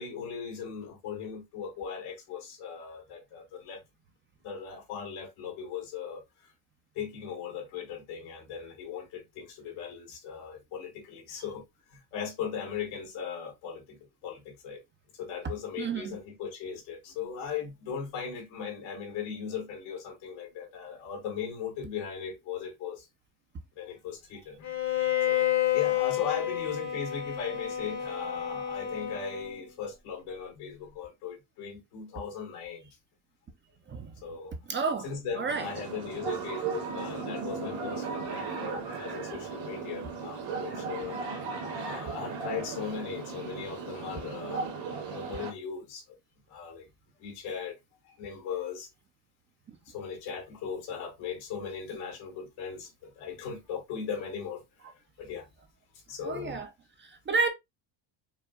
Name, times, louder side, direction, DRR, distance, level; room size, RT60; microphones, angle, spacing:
voice 1, 0.0-3.8 4.4-6.5 7.0-14.8 15.1-23.1 23.8-24.6 24.9-33.0 34.2-34.5 35.0-41.2 41.7-46.0 46.5-46.9 47.2-47.8 48.0-48.9 49.8-54.9 55.2-55.5 56.1-56.7, left 7 dB, 85° left, 1.8 m, -38 dB
voice 2, 15.8-16.2 25.4-25.5 33.9-34.1 34.7-35.1 35.4-35.6 56.2-56.7 57.0-57.5, right 4 dB, 25° right, 0.5 m, -30 dB
Bowed string instrument, 24.6-29.7, left 12 dB, 35° left, 0.9 m, -30 dB
sound 1, 35.5-45.5, right 5 dB, 60° right, 1.6 m, -36 dB
4.8 x 2.1 x 2.3 m
cardioid pair, 105°, 49 cm